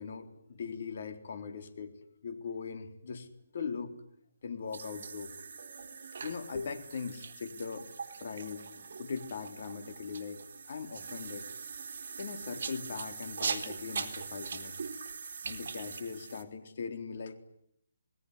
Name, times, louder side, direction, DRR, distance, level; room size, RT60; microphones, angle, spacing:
voice 1, 0.0-2.0 2.2-3.3 3.5-3.9 4.4-5.3 6.2-7.9 8.2-8.6 9.0-11.5 12.2-14.9 15.4-17.4, left 5 dB, 50° left, 7 dB, 3.9 m, -40 dB
sound 1, 4.7-16.4, right 5 dB, 55° right, 3.7 m, -41 dB
28.0 x 20.5 x 9.8 m, 0.73 s
hypercardioid pair, 165°, 0 cm